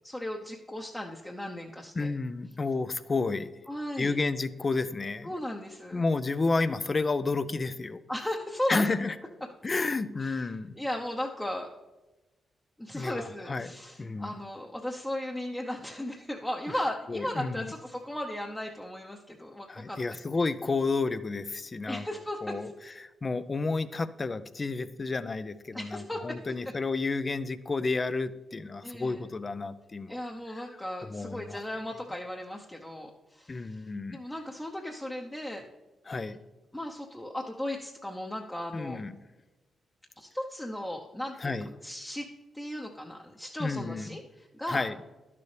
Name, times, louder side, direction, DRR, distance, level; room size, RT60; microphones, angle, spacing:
voice 1, 0.0-2.1 3.7-4.1 5.2-6.0 8.1-8.9 10.2-10.5 10.7-11.7 12.8-20.2 21.9-22.7 25.7-26.4 28.8-29.3 30.1-35.6 36.1-36.3 36.7-39.0 40.2-42.3 42.5-44.8, left 1 dB, 15° left, 1 dB, 0.8 m, -36 dB
voice 2, 2.0-3.5 4.0-5.4 5.9-8.0 8.7-9.1 9.6-10.7 12.9-14.3 17.1-17.7 19.7-22.1 22.4-22.7 23.0-30.2 31.1-31.6 33.5-34.2 36.1-36.4 38.7-39.1 41.4-41.7 43.6-44.2 44.7-45.0, left 3 dB, 35° left, 14 dB, 0.5 m, -31 dB
11.5 x 6.8 x 3.3 m, 1.1 s
supercardioid pair, 60°, 0 cm